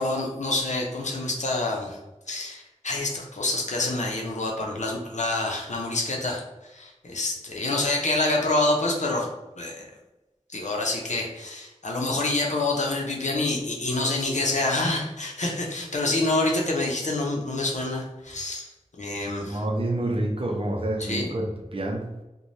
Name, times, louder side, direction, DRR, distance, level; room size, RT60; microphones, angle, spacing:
voice 1, 0.0-2.0 2.3-9.3 9.6-9.8 10.5-18.7 19.0-19.6 21.0-21.3, left 2 dB, 70° left, -1 dB, 0.6 m, -27 dB
voice 2, 19.5-21.5 21.7-22.0, right 1 dB, 45° right, 0 dB, 0.6 m, -27 dB
3.1 x 2.2 x 2.6 m, 1.0 s
wide cardioid pair, 50°, 13 cm